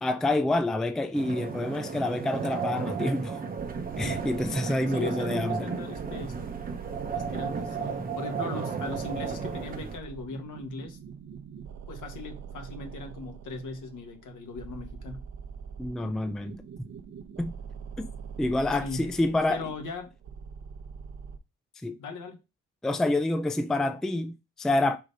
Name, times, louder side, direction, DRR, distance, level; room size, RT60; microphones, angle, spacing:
voice 1, 0.0-3.4 4.0-5.7 15.8-16.6 17.4-17.5 18.0-18.1 18.4-19.7 21.8-22.0 22.8-25.0, left 2 dB, ahead, 0.3 m, -27 dB
sound 1, 1.1-10.0, right 5 dB, 30° right, 0.8 m, -34 dB
sound 2, 3.6-21.4, right 7 dB, 60° right, 0.8 m, -44 dB
voice 2, 4.9-6.4 7.1-11.0 11.9-15.2 18.8-19.1 19.5-20.1 22.0-22.4, left 3 dB, 75° left, 1.4 m, -38 dB
4.8 x 3.9 x 5.2 m
wide cardioid pair, 170°, 31 cm